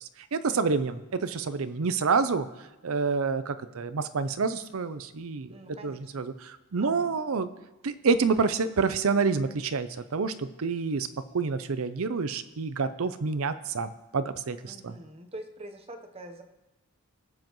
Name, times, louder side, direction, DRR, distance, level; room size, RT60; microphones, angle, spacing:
voice 1, 0.0-2.5 2.8-5.5 5.8-7.5 7.8-11.1 11.3-15.0, right 4 dB, 75° right, 12 dB, 0.6 m, -28 dB
voice 2, 5.5-6.2 6.8-7.2 14.6-16.4, right 1 dB, 25° right, 5 dB, 0.9 m, -45 dB
21.5 x 7.6 x 3.1 m, 1.1 s
head